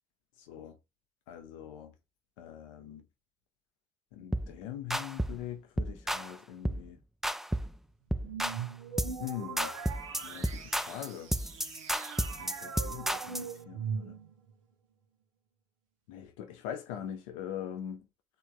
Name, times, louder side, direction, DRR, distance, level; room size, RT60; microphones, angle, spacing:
voice 1, 1.3-1.9 2.4-3.0 4.1-7.0 9.2-9.7 10.2-11.3 12.4-14.2 16.1-18.1, left 10 dB, 80° left, 0.7 m, -42 dB
sound 1, 4.3-4.5 4.9-5.4 5.8-6.3 6.6-6.9 7.2-7.8 8.1-8.6 9.0-9.3 9.6-13.5, right 1 dB, ahead, 0.3 m, -32 dB
sound 2, 8.2-14.5, right 6 dB, 85° right, 0.5 m, -41 dB
3.4 x 2.9 x 2.2 m
hypercardioid pair, 40°, 17 cm